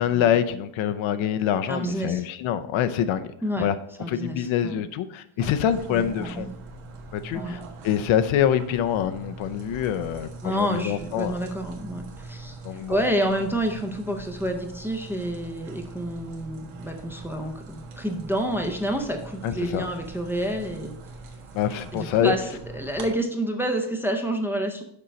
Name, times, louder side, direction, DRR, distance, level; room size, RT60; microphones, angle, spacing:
voice 1, 0.0-3.3 3.6-3.8 4.1-6.5 7.1-11.4 12.6-13.0 19.4-19.9 21.5-22.3, left 9 dB, 70° left, 10 dB, 0.7 m, -25 dB
voice 2, 1.7-2.2 3.4-3.7 4.0-4.8 5.9-6.5 7.3-7.6 10.4-12.6 12.9-20.9 21.9-24.8, right 1 dB, 5° right, 2 dB, 0.5 m, -29 dB
sound 1, 5.4-23.1, right 3 dB, 75° right, 1.5 m, -42 dB
6.8 x 4.5 x 5.1 m, 0.75 s
cardioid pair, 155°, 49 cm